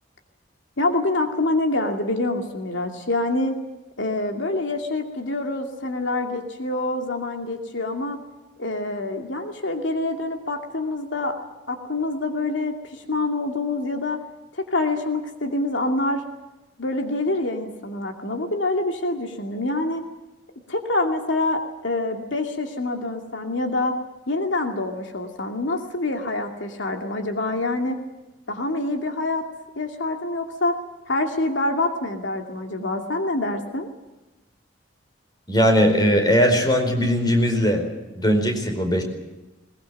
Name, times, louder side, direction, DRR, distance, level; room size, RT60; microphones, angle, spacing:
voice 1, 0.8-3.6 4.0-8.2 8.6-11.4 11.7-14.2 14.5-16.2 16.8-20.0 20.7-24.0 24.3-28.0 28.5-29.4 29.8-30.8 31.1-33.9, left 2 dB, 75° left, 4 dB, 2.5 m, -26 dB
voice 2, 35.5-37.8 38.1-39.0, equal, 20° left, 4 dB, 4.6 m, -19 dB
21.5 x 21.5 x 9.1 m, 1.1 s
head